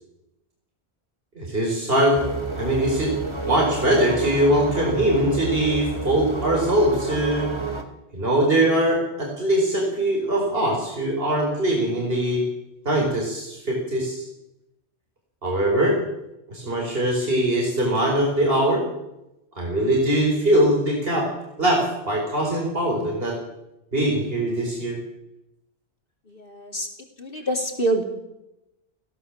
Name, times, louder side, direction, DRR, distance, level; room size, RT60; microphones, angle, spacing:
voice 1, 1.3-2.2 2.6-3.1 3.4-7.5 8.1-12.4 12.8-14.3 15.4-16.0 16.5-18.8 19.6-21.3 21.6-23.4 23.9-25.0, right 1 dB, 60° right, -1 dB, 5.1 m, -22 dB
sound 1, 2.2-7.8, right 3 dB, 25° right, 2.9 m, -30 dB
voice 2, 26.3-26.9 27.2-28.0, right 2 dB, 55° left, 4 dB, 3.4 m, -26 dB
25.0 x 17.0 x 7.5 m, 0.91 s
omnidirectional pair, 1.1 m